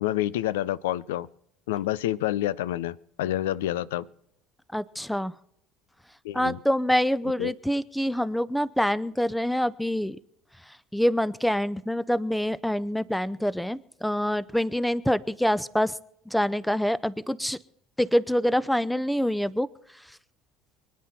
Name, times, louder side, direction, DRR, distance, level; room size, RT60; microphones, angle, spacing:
voice 1, 0.0-1.3 1.7-4.1 6.2-6.6 7.4-7.5, left 13 dB, 75° left, 20 dB, 0.5 m, -28 dB
voice 2, 4.7-5.3 6.3-10.2 10.9-15.9 16.3-17.6 18.0-19.7, equal, 5° left, 17 dB, 0.7 m, -26 dB
25.0 x 9.5 x 4.4 m, 0.75 s
hypercardioid pair, 65°, 0 cm